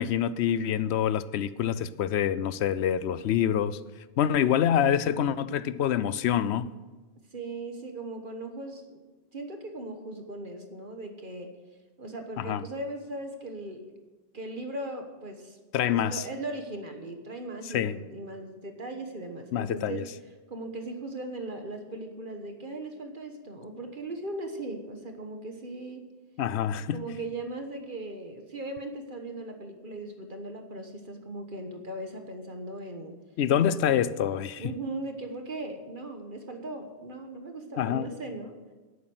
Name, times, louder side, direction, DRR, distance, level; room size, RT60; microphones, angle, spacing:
voice 1, 0.0-3.8 4.2-6.7 12.4-12.6 15.7-16.2 17.7-18.0 19.5-20.0 26.4-27.0 33.4-34.7 37.8-38.1, left 9 dB, 90° left, 0.9 m, -26 dB
voice 2, 7.3-9.0 9.3-11.5 12.0-14.0 14.3-15.6 15.9-20.0 20.5-26.1 26.9-33.1 34.6-38.6, right 2 dB, 50° right, 1.5 m, -38 dB
11.5 x 8.5 x 7.9 m
omnidirectional pair, 1.1 m